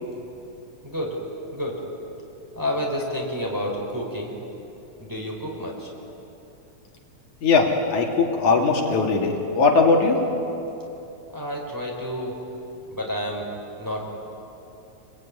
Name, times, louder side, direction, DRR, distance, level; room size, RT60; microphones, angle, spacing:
voice 1, 0.8-1.2 1.5-1.8 2.5-4.3 5.0-5.9 11.3-12.4 12.9-13.5 13.8-14.0, equal, 5° right, -2 dB, 4.6 m, -29 dB
voice 2, 7.4-10.2, left 4 dB, 80° left, 0 dB, 4.0 m, -20 dB
28.0 x 21.0 x 9.8 m, 2.9 s
omnidirectional pair, 3.4 m